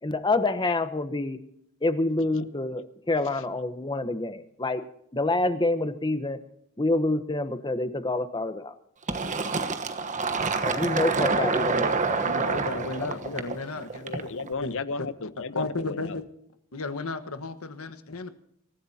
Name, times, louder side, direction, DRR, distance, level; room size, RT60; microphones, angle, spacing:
voice 1, 0.0-1.4 1.8-4.8 5.1-6.4 6.8-8.7 10.6-12.4 12.7-13.1, left 2 dB, 20° left, 11 dB, 1.0 m, -27 dB
Fill (with liquid), 9.1-14.5, right 4 dB, 35° right, 1.2 m, -27 dB
voice 2, 12.2-14.0 14.6-14.7 15.5-16.2 16.7-18.3, left 3 dB, 80° left, 9 dB, 1.5 m, -33 dB
voice 3, 14.0-16.2, left 4 dB, 65° left, 13 dB, 0.9 m, -34 dB
25.5 x 14.5 x 2.9 m, 0.72 s
head